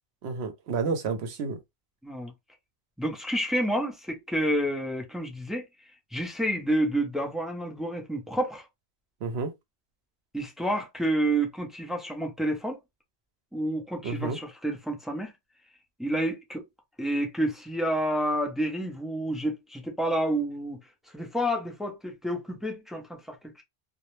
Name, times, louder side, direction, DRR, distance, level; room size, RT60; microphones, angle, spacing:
voice 1, 0.2-1.6 9.2-9.5 14.0-14.4, right 4 dB, 75° right, 0.9 m, -30 dB
voice 2, 3.0-5.7 6.1-8.7 10.3-12.8 13.5-15.3 16.0-16.6 17.0-20.8 21.1-23.6, right 1 dB, ahead, 0.3 m, -29 dB
2.3 x 2.0 x 3.0 m
omnidirectional pair, 1.1 m